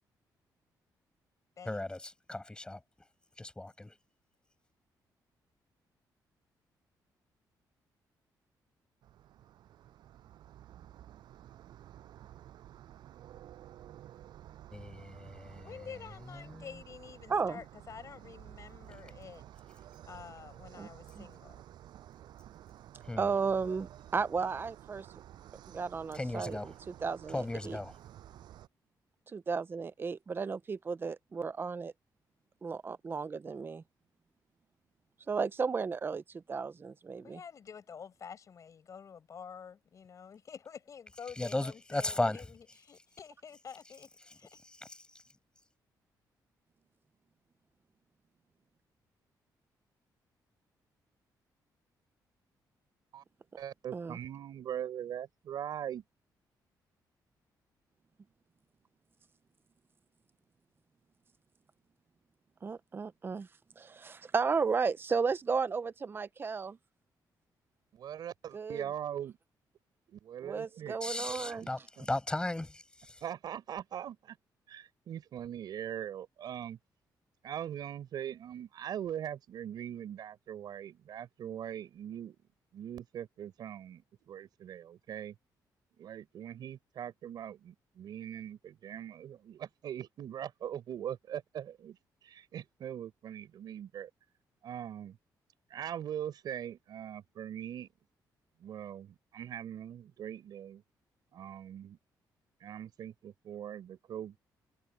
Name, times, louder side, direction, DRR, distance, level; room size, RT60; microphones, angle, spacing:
voice 1, 1.6-3.1 3.4-4.0 14.7-16.8 18.9-19.0 23.0-23.3 26.1-26.7 27.3-27.9 41.3-42.5 42.9-43.0 44.2-45.3 71.0-73.2, left 2 dB, 10° left, 7.9 m, -37 dB
sound 1, 9.0-28.7, right 12 dB, 85° right, 7.5 m, -52 dB
voice 2, 15.6-19.4 20.0-21.6 37.2-42.4 42.9-44.6, left 7 dB, 45° left, 7.7 m, -49 dB
voice 3, 17.3-17.6 20.8-20.9 21.1-21.3 23.2-25.1 25.7-26.7 27.0-27.8 29.3-31.9 32.6-33.8 35.3-37.4 53.9-54.2 62.6-63.5 63.8-66.8 68.5-68.8 70.4-71.7, right 5 dB, 30° right, 0.7 m, -34 dB
voice 4, 53.6-56.0 67.9-69.4 70.1-71.0 71.6-71.7 72.0-72.1 73.2-74.4 74.7-76.8 77.4-82.4 82.7-85.3 86.0-92.0 92.2-94.1 94.6-95.2 95.7-97.9 98.6-100.8 101.3-102.0 102.6-104.4, right 10 dB, 70° right, 4.7 m, -41 dB
cardioid pair, 125°, 7 cm